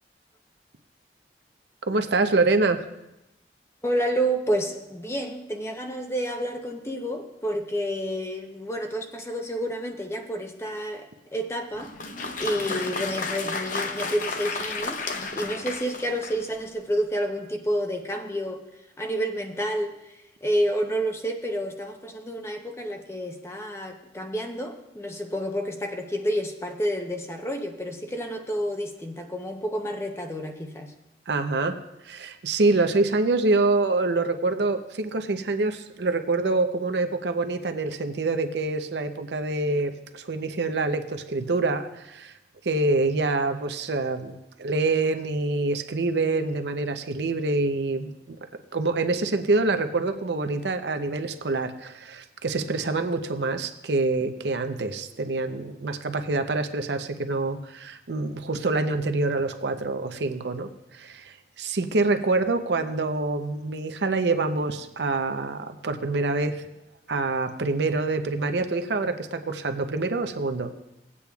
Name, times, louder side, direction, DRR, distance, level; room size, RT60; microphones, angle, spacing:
voice 1, 1.9-2.8 31.3-31.8 32.0-42.3 42.6-48.4 48.7-66.6 67.1-70.7, right 3 dB, 75° right, 8 dB, 0.6 m, -26 dB
voice 2, 3.8-11.9 12.4-15.1 15.4-18.6 19.0-30.9, equal, 15° left, 4 dB, 0.7 m, -29 dB
Applause, 11.7-16.6, left 3 dB, 45° left, 0.7 m, -32 dB
18.0 x 8.5 x 2.3 m, 0.91 s
head